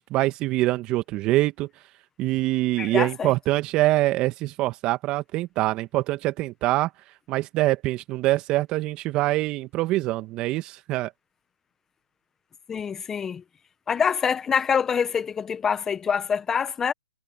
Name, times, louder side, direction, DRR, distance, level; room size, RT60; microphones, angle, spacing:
voice 1, 0.0-1.7 2.2-6.9 7.3-11.1, right 17 dB, 25° right, 2.0 m, -24 dB
voice 2, 2.8-3.3 12.7-13.4 13.9-16.9, left 7 dB, 10° left, 1.5 m, -25 dB
hypercardioid pair, 140°, 3 cm